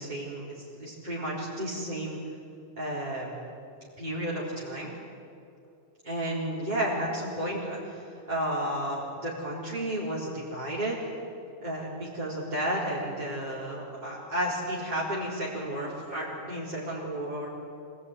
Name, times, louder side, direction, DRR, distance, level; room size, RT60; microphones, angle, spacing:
voice 1, 0.0-2.2 2.8-3.4 4.0-4.9 6.0-11.0 11.6-17.5, right 1 dB, 40° right, -9 dB, 4.3 m, -32 dB
26.0 x 18.0 x 9.8 m, 2.6 s
omnidirectional pair, 1.2 m